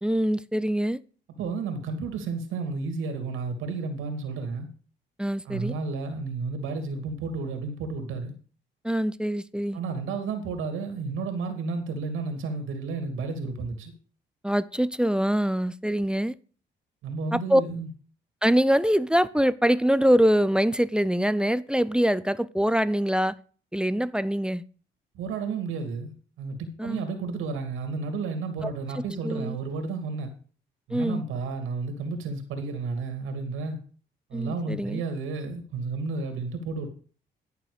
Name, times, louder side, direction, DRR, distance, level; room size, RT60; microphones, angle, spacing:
voice 1, 0.0-1.0 5.2-5.7 8.8-9.8 14.4-16.4 17.3-17.6 18.4-23.4 23.7-24.6 26.8-27.0 28.6-28.7 29.2-29.6 30.9-31.2 34.3-35.0, equal, 5° right, 0.5 m, -24 dB
voice 2, 1.4-4.7 5.4-8.3 9.7-13.9 17.0-17.9 25.1-30.3 30.9-33.8 34.3-36.9, right 4 dB, 85° right, 2.6 m, -32 dB
12.0 x 6.7 x 5.1 m
cardioid pair, 90°, 20 cm